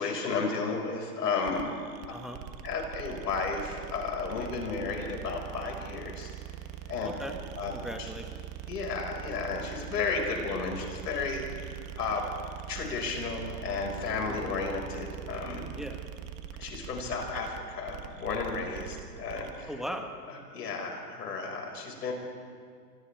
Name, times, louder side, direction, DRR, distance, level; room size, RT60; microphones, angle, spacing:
voice 1, 0.0-1.7 2.6-6.3 6.9-7.1 7.6-7.7 8.0-8.1 8.7-12.3 12.7-15.6 16.6-19.7 20.3-22.1, left 4 dB, 80° left, 1 dB, 5.8 m, -33 dB
sound 1, 1.4-19.6, right 10 dB, 30° right, 1.4 m, -42 dB
voice 2, 7.0-7.4 7.7-8.4 14.3-14.6 15.7-16.0 19.7-20.1, equal, ahead, 3 dB, 1.5 m, -38 dB
29.5 x 25.0 x 3.6 m, 2.1 s
hypercardioid pair, 130°, 48 cm